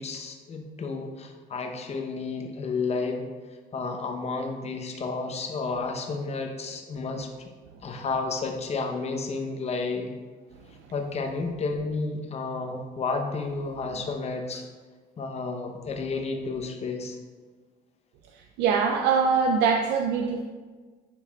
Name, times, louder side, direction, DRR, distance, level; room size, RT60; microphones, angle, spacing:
voice 1, 0.0-3.3 3.7-7.5 7.8-10.1 10.9-14.6 15.2-17.2, left 4 dB, 40° left, 4 dB, 0.8 m, -31 dB
voice 2, 18.6-20.4, right 5 dB, 90° right, 3 dB, 0.4 m, -23 dB
10.0 x 4.5 x 2.3 m, 1.4 s
cardioid pair, 110°, 17 cm